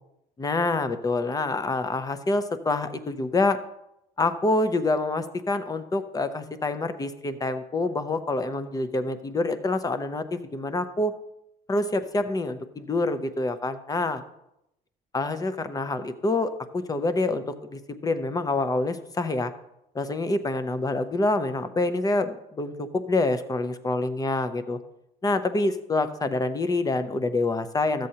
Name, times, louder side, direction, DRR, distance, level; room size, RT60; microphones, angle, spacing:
voice 1, 0.4-3.6 4.2-11.1 11.7-14.2 15.1-19.5 19.9-24.8 25.2-28.1, left 2 dB, 20° left, 11 dB, 0.7 m, -26 dB
13.0 x 7.6 x 2.8 m, 0.83 s
cardioid pair, 110°, 17 cm